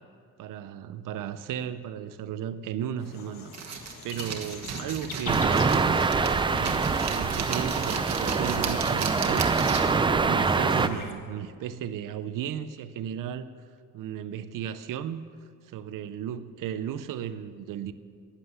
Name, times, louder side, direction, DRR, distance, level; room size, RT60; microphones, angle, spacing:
voice 1, 0.4-3.5 4.0-6.0 6.5-9.5 10.0-13.5 13.9-15.2 15.6-17.9, right 9 dB, 65° right, 12 dB, 0.6 m, -35 dB
sound 1, 3.0-11.1, left 6 dB, 70° left, 1.5 m, -45 dB
sound 2, 3.5-10.1, right 6 dB, 50° right, 1.3 m, -35 dB
sound 3, 5.3-10.9, right 4 dB, 15° right, 0.3 m, -25 dB
11.0 x 9.9 x 7.8 m, 2.1 s
cardioid pair, 160°, 34 cm